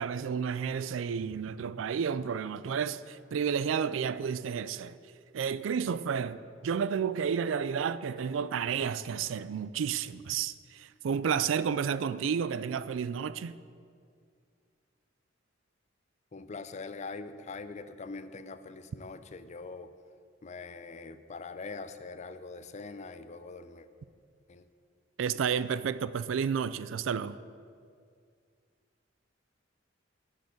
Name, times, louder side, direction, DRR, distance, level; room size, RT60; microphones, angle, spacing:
voice 1, 0.0-5.0 5.3-13.6 25.2-27.4, right 7 dB, 85° right, 0.4 m, -31 dB
voice 2, 16.3-19.9 20.4-23.9 24.5-24.7, left 4 dB, 35° left, 0.5 m, -43 dB
8.3 x 6.4 x 8.2 m
head